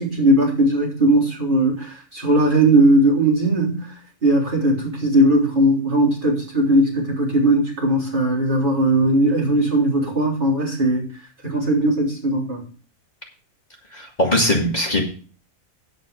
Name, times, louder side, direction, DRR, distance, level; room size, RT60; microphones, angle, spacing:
voice 1, 0.0-3.9 4.2-11.1 11.4-12.6, right 1 dB, 35° right, -5 dB, 3.9 m, -18 dB
voice 2, 13.9-15.0, left 1 dB, 30° left, -1 dB, 2.0 m, -20 dB
9.3 x 8.5 x 5.1 m, 0.40 s
omnidirectional pair, 1.4 m